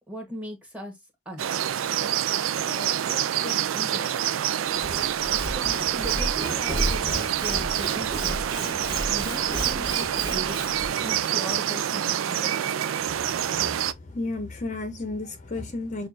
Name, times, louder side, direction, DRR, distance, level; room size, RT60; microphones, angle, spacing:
voice 1, 0.1-1.0 1.2-1.4 2.7-4.2 5.5-8.4 9.1-10.6 10.8-12.7, equal, 5° right, 1.3 m, -39 dB
sound 1, 1.4-13.9, right 10 dB, 85° right, 0.4 m, -26 dB
Sawing / Wood, 4.7-10.9, right 1 dB, 25° right, 1.2 m, -33 dB
voice 2, 8.8-9.1 13.3-13.5 14.1-16.1, left 2 dB, 40° left, 0.7 m, -33 dB
6.4 x 2.5 x 2.6 m
head